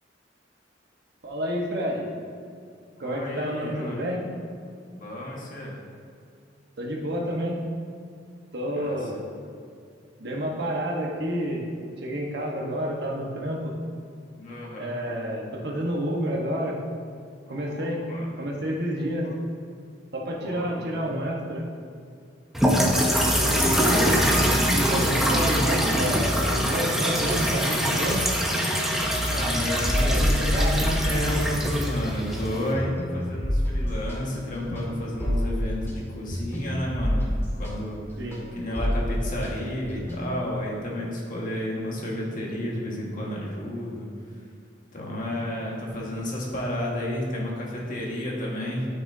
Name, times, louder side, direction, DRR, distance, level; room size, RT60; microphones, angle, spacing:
voice 1, 1.2-2.1 3.0-4.2 6.8-7.6 8.5-9.3 10.2-11.7 12.0-13.7 14.7-16.8 17.5-18.0 18.4-19.3 20.1-21.6 23.4-24.2 24.7-28.3 30.0-30.8 38.2-38.4, equal, 65° right, -1 dB, 1.3 m, -29 dB
voice 2, 3.0-4.1 4.9-5.8 8.7-9.0 14.4-14.9 17.5-18.3 19.0-19.4 20.3-21.2 23.7-24.1 29.2-37.3 37.6-38.0 38.6-44.1 44.9-48.9, left 1 dB, 45° left, -3 dB, 1.7 m, -31 dB
sound 1, 22.5-32.7, equal, ahead, 0.8 m, -23 dB
sound 2, 29.9-31.6 31.9-40.5, equal, 15° left, 2.2 m, -28 dB
12.5 x 6.0 x 2.8 m, 2.2 s
head